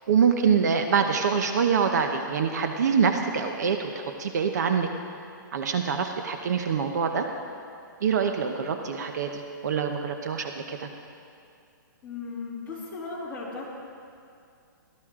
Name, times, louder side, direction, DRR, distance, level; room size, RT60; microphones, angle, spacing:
voice 1, 0.1-4.9 5.5-7.3 8.0-10.9, right 6 dB, 55° right, 5 dB, 0.9 m, -25 dB
voice 2, 12.0-13.7, left 4 dB, 15° left, -9 dB, 2.9 m, -36 dB
17.5 x 13.5 x 3.7 m, 2.4 s
hypercardioid pair, 170°, 11 cm